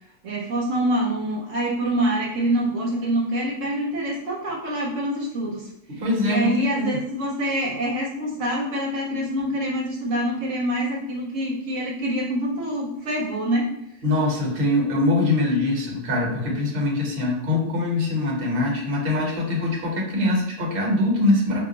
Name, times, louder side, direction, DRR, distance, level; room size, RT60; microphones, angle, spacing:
voice 1, 0.2-5.7 6.2-13.7, right 1 dB, 80° right, -3 dB, 1.0 m, -25 dB
voice 2, 5.9-7.0 14.0-21.6, left 2 dB, 50° right, -1 dB, 1.0 m, -23 dB
2.3 x 2.3 x 3.7 m, 0.80 s
omnidirectional pair, 1.3 m